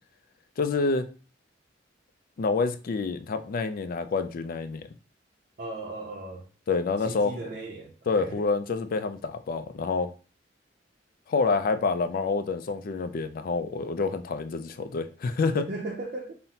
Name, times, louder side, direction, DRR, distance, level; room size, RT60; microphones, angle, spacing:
voice 1, 0.6-1.0 2.4-4.9 6.7-7.4 8.1-10.1 11.3-15.7, left 4 dB, 50° left, 0.4 m, -27 dB
voice 2, 5.6-6.5 7.0-8.5 15.5-16.3, right 2 dB, 50° right, 0.5 m, -37 dB
5.4 x 2.1 x 2.8 m
head